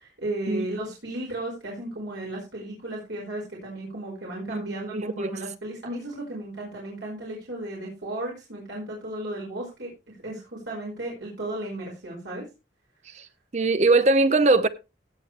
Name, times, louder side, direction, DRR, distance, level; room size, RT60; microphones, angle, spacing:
voice 1, 0.0-12.4, right 1 dB, 90° right, 5.0 m, -35 dB
voice 2, 4.5-5.4 13.1-13.3 13.5-14.7, right 3 dB, 40° right, 0.7 m, -21 dB
17.0 x 7.6 x 3.3 m
head